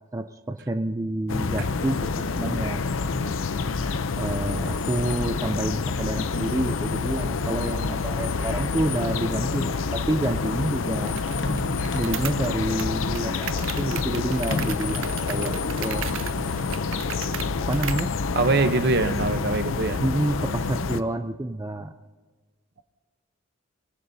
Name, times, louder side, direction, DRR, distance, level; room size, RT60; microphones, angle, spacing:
voice 1, 0.1-2.8 4.2-11.2 11.9-16.0 17.7-18.1 20.0-21.9, right 1 dB, 15° right, 7 dB, 0.4 m, -28 dB
sound 1, 1.3-21.0, left 4 dB, 85° left, 0.6 m, -28 dB
sound 2, 10.2-12.4 13.4-15.1 16.2-17.9 18.2-19.6, left 2 dB, 60° left, 1.1 m, -37 dB
sound 3, 11.1-18.2, right 11 dB, 80° right, 0.5 m, -37 dB
voice 2, 18.3-20.0, right 3 dB, 55° right, 10 dB, 0.8 m, -23 dB
23.5 x 17.0 x 2.7 m, 1.4 s
head